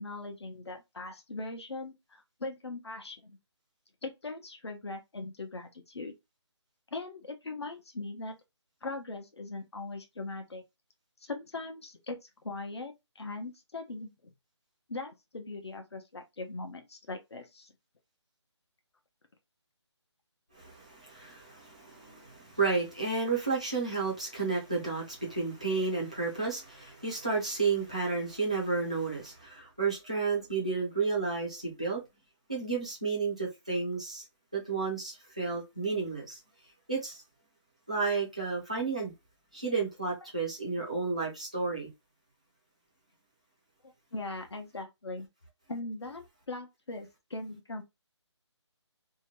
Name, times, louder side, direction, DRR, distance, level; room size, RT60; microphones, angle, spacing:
voice 1, 0.0-3.4 4.0-6.1 6.9-8.3 8.8-10.6 11.2-14.1 14.9-17.7 44.1-45.3 45.7-47.8, left 2 dB, 60° left, 0.8 m, -40 dB
voice 2, 20.6-32.0 32.5-34.2 34.5-36.4 36.9-37.2 37.9-39.1 39.5-41.9, right 4 dB, 15° right, 0.4 m, -32 dB
2.8 x 2.2 x 3.0 m
hypercardioid pair, 180°, 15 cm